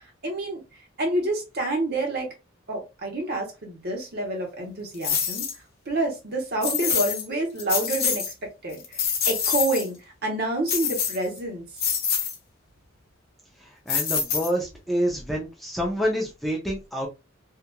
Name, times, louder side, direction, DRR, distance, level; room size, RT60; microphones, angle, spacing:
voice 1, 0.2-0.6 1.0-2.3 2.7-5.5 5.9-11.6, right 2 dB, 50° right, 1.0 m, -28 dB
sound 1, 5.0-5.6 6.6-7.2 7.6-8.3 8.7-9.9 10.7-11.4 11.8-12.4 13.9-14.7, left 7 dB, 50° left, 0.7 m, -26 dB
voice 2, 13.6-17.1, equal, ahead, 0.5 m, -28 dB
2.8 x 2.4 x 2.2 m
head